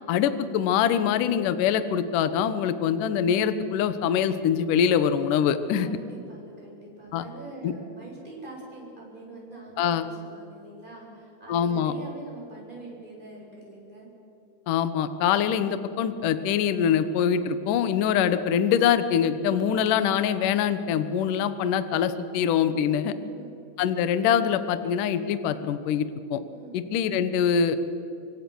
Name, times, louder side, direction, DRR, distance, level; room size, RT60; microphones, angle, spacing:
voice 1, 0.1-5.9 7.1-7.3 7.6-7.7 9.8-10.1 11.5-11.9 14.7-23.1 23.8-26.4 26.7-27.8, left 8 dB, 65° left, 12 dB, 2.3 m, -24 dB
voice 2, 5.8-14.1 23.2-23.6 26.5-26.8, right 2 dB, 10° right, -3 dB, 8.1 m, -44 dB
26.5 x 25.0 x 6.3 m, 2.8 s
omnidirectional pair, 4.7 m